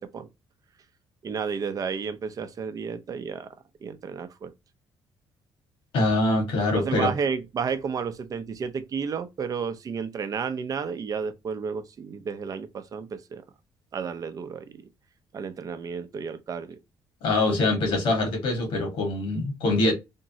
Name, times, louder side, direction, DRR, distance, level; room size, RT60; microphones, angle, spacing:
voice 1, 1.2-3.5 3.8-4.5 6.7-13.4 13.9-14.8 15.3-16.8, right 6 dB, 40° right, 0.5 m, -32 dB
voice 2, 5.9-7.1 17.2-19.9, left 2 dB, 80° left, 1.6 m, -24 dB
3.5 x 2.0 x 2.7 m
cardioid pair, 100°, 9 cm